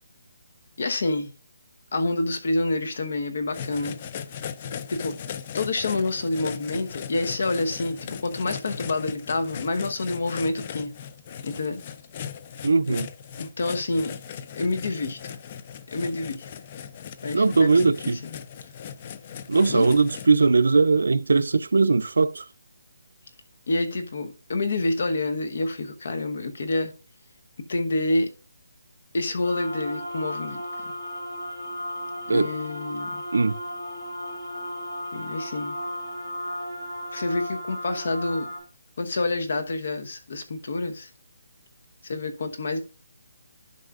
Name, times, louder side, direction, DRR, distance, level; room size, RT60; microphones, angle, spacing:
voice 1, 0.8-1.3 1.9-4.0 4.9-5.2 5.5-10.9 11.4-11.8 12.9-13.0 13.4-14.2 14.6-15.4 15.9-16.5 17.2-18.4 19.7-19.9 23.7-26.9 27.7-28.3 29.1-30.9 32.3-33.2 35.1-35.8 37.1-38.5 39.0-41.1 42.0-42.8, left 2 dB, 55° left, 1.1 m, -28 dB
sound 1, 3.5-20.3, left 8 dB, 30° left, 0.4 m, -38 dB
voice 2, 12.6-13.1 17.3-18.2 19.5-22.4 32.3-32.5 33.3-33.5, right 4 dB, 80° right, 0.4 m, -20 dB
sound 2, 29.4-38.6, equal, 80° left, 4.1 m, -35 dB
11.5 x 5.4 x 2.4 m
hypercardioid pair, 170°, 0 cm